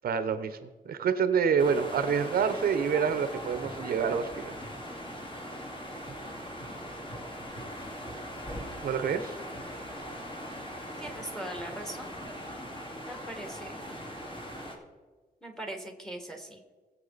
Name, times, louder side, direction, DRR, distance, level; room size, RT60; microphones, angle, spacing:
voice 1, 0.0-0.6 0.8-4.5 8.8-9.4, right 6 dB, 75° right, 10 dB, 0.8 m, -27 dB
sound 1, 1.6-14.8, equal, 35° left, 2.3 m, -40 dB
voice 2, 11.0-12.1 13.0-13.8 15.4-16.6, right 1 dB, 5° left, 3 dB, 1.7 m, -40 dB
19.5 x 7.4 x 4.0 m, 1.3 s
wide cardioid pair, 155°, 16 cm